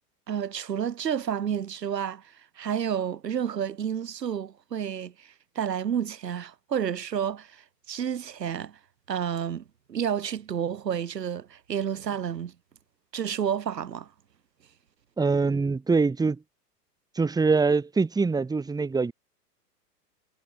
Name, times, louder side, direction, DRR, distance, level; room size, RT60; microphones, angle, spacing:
voice 1, 0.3-2.2 2.6-5.3 5.5-7.5 7.9-8.7 9.1-9.6 9.9-12.5 13.1-14.1, right 8 dB, 85° right, 1.5 m, -30 dB
voice 2, 15.2-16.4 17.2-19.1, right 4 dB, 10° right, 1.7 m, -24 dB
hypercardioid pair, 115°, 48 cm